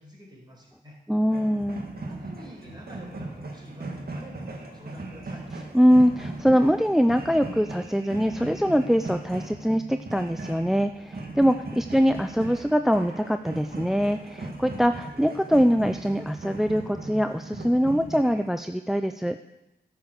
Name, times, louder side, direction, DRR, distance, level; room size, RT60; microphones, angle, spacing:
voice 1, 0.0-1.0 2.0-5.4 11.8-11.9, equal, 25° right, -2 dB, 4.8 m, -47 dB
voice 2, 1.1-1.9 5.7-19.4, equal, ahead, 9 dB, 0.4 m, -23 dB
sound 1, 1.3-18.5, right 2 dB, 60° right, 1.8 m, -38 dB
12.5 x 7.1 x 6.5 m, 0.95 s
wide cardioid pair, 70°, 18 cm